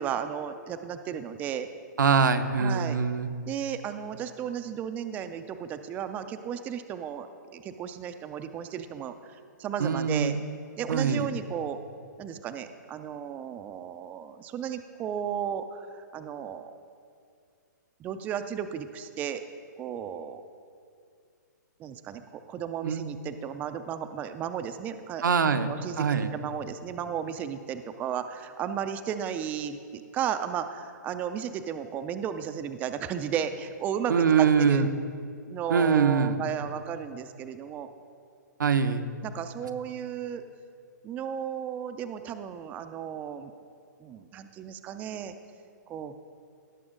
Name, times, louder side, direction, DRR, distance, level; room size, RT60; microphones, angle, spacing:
voice 1, 0.0-1.7 2.6-3.0 3.5-7.3 7.5-10.4 10.8-11.8 12.2-16.7 18.0-19.4 19.8-20.4 21.8-25.2 25.6-34.8 35.5-37.9 39.2-40.4 41.0-43.5 44.0-45.3 45.9-46.1, right 8 dB, 15° right, 9 dB, 0.4 m, -34 dB
voice 2, 2.0-3.3 9.8-10.4 10.9-11.3 22.8-23.1 25.2-26.3 34.1-34.9 35.7-36.4 38.6-39.1, right 6 dB, 85° right, 9 dB, 0.7 m, -23 dB
17.5 x 6.9 x 3.8 m, 2.3 s
hypercardioid pair, 140°, 10 cm